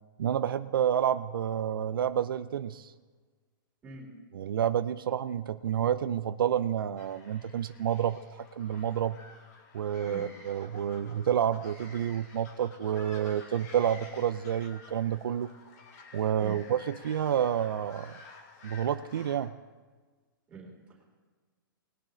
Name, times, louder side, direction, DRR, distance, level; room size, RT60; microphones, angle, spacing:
voice 1, 0.2-2.9 4.3-8.2 8.5-9.2 9.7-15.5 16.1-18.1 18.6-19.5, right 9 dB, 75° right, 11 dB, 0.5 m, -29 dB
voice 2, 3.8-4.1 10.0-10.2 16.4-16.6 20.5-21.0, right 4 dB, 10° right, -3 dB, 3.2 m, -45 dB
sound 1, 7.0-19.4, left 3 dB, 45° left, 2.6 m, -52 dB
20.5 x 9.0 x 3.9 m, 1.4 s
hypercardioid pair, 160°, 12 cm